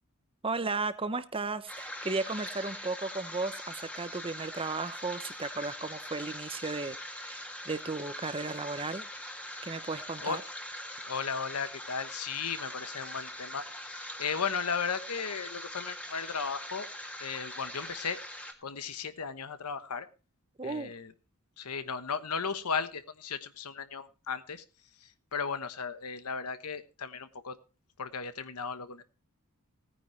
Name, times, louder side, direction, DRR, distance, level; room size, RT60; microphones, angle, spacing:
voice 1, 0.4-9.0 9.6-10.4 20.6-20.9, right 3 dB, 25° right, 0.8 m, -35 dB
sound 1, 1.7-18.5, left 1 dB, 5° left, 1.7 m, -42 dB
voice 2, 11.1-16.9 17.2-18.2 18.6-20.1 20.6-21.1 21.6-24.6 25.0-27.6 28.0-29.0, left 6 dB, 90° left, 1.1 m, -35 dB
17.5 x 9.6 x 3.2 m
head